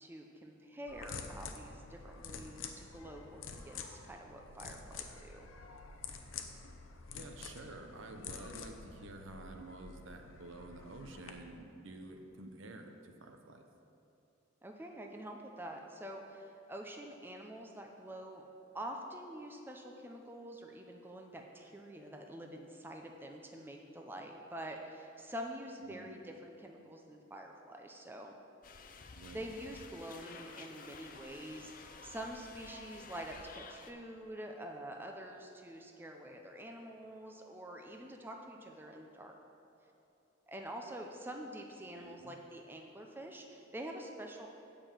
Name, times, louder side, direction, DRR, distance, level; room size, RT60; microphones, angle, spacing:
voice 1, 0.0-5.5 14.6-18.4 18.7-28.4 29.3-39.3 40.5-44.5, right 1 dB, 10° right, 2 dB, 0.6 m, -46 dB
sound 1, 0.9-11.3, left 5 dB, 80° left, 0.7 m, -48 dB
voice 2, 7.1-13.7 25.8-26.1 29.1-29.5 41.9-42.4, right 2 dB, 70° right, 4 dB, 0.8 m, -50 dB
sound 2, 28.6-33.9, left 4 dB, 45° left, 0.5 m, -52 dB
8.8 x 5.3 x 7.3 m, 2.8 s
head